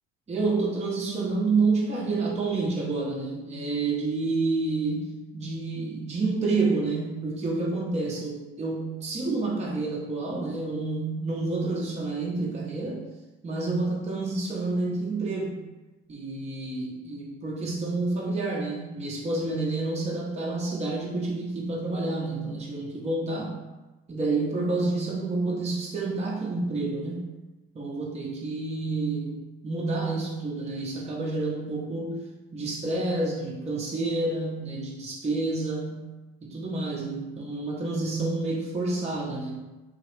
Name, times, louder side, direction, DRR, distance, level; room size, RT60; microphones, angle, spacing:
voice 1, 0.3-13.0 13.4-15.6 16.1-23.6 24.1-27.3 27.7-32.2 32.5-36.1 36.4-39.6, right 3 dB, 20° right, -3 dB, 0.7 m, -29 dB
3.0 x 2.4 x 3.0 m, 1.1 s
hypercardioid pair, 65°, 29 cm